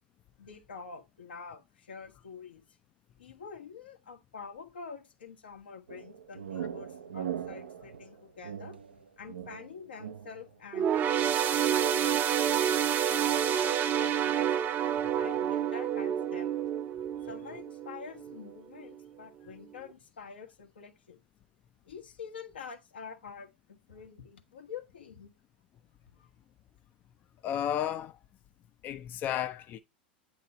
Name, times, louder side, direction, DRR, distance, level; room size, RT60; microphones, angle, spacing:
voice 1, 0.4-2.6 3.2-8.8 9.2-10.9 11.2-12.8 13.1-14.5 15.1-16.5 17.3-21.2 21.9-25.3 26.1-26.3, left 6 dB, 85° left, 1.1 m, -46 dB
sound 1, 5.9-10.5, right 9 dB, 85° right, 0.5 m, -40 dB
sound 2, 10.7-18.4 18.8-19.0 19.9-20.0, right 9 dB, 35° right, 0.5 m, -28 dB
voice 2, 27.4-28.2 28.8-29.8, left 10 dB, 35° left, 0.4 m, -33 dB
8.4 x 3.0 x 4.0 m
hypercardioid pair, 95°, 5 cm